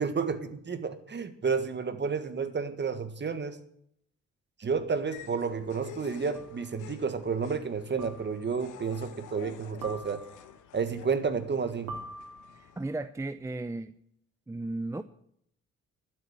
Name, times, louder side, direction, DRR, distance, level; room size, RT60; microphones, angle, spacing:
voice 1, 0.0-3.6 4.6-10.2 10.7-12.0, right 5 dB, 35° right, 10 dB, 1.7 m, -31 dB
sound 1, 4.8-4.9 6.4-6.7 8.0-8.6 9.8-10.6 11.9-12.8, right 2 dB, 75° right, 3.2 m, -44 dB
sound 2, 5.1-12.9, left 10 dB, 85° left, 1.3 m, -50 dB
voice 2, 12.6-13.9 14.5-15.0, right 2 dB, 10° right, 11 dB, 0.6 m, -35 dB
12.0 x 8.4 x 8.9 m, 0.70 s
cardioid pair, 90°, 30 cm